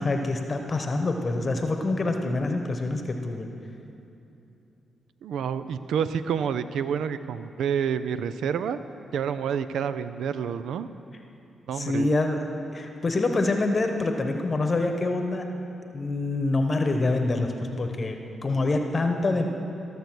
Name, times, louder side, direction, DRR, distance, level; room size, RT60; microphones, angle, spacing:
voice 1, 0.0-3.5 11.7-15.4 15.9-17.5 17.8-19.5, left 2 dB, 40° left, 4 dB, 1.0 m, -26 dB
voice 2, 5.2-8.8 9.1-10.9 11.7-12.1, right 7 dB, 80° right, 12 dB, 0.4 m, -28 dB
14.5 x 6.8 x 6.1 m, 2.8 s
supercardioid pair, 55°, 0 cm